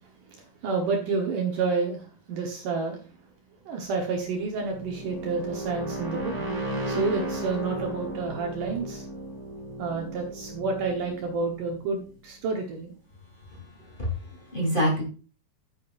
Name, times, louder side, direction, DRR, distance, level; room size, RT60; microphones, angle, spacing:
voice 1, 0.0-3.0 3.6-9.1 9.8-13.0, right 4 dB, 65° right, 1 dB, 2.7 m, -30 dB
sound 1, 4.1-12.9, right 1 dB, 25° right, 3.3 m, -36 dB
voice 2, 13.5-15.0, equal, 15° left, -3 dB, 3.4 m, -28 dB
11.5 x 9.5 x 2.6 m, 0.37 s
omnidirectional pair, 4.4 m